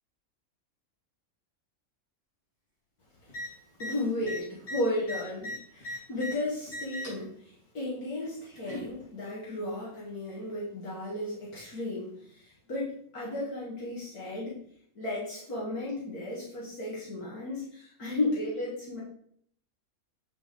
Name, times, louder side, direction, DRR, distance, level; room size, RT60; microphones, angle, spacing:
sound 1, 3.3-3.5 3.7-3.9 4.2-6.3 6.7-7.2 8.2-8.9 9.9-10.0, left 1 dB, 40° left, 3.8 m, -38 dB
voice 1, 3.8-14.6 15.0-19.0, left 1 dB, 85° left, -7 dB, 2.5 m, -34 dB
7.7 x 5.8 x 3.7 m, 0.64 s
omnidirectional pair, 1.5 m